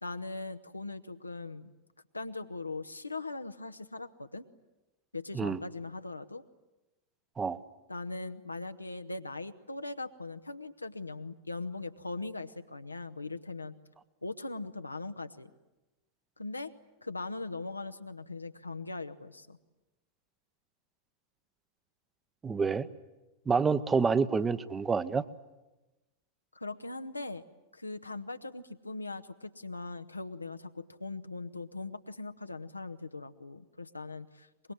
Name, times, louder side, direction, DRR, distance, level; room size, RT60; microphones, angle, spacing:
voice 1, 0.0-1.7 2.1-4.4 5.1-6.4 7.9-13.7 14.2-15.5 16.4-16.7 17.0-19.6 26.5-27.4 27.7-34.7, left 3 dB, 85° left, 9 dB, 0.9 m, -40 dB
voice 2, 22.4-22.9 23.5-25.2, right 5 dB, 15° right, 14 dB, 0.9 m, -28 dB
24.5 x 21.5 x 9.7 m, 1.0 s
figure-of-eight pair, 90°, 0 cm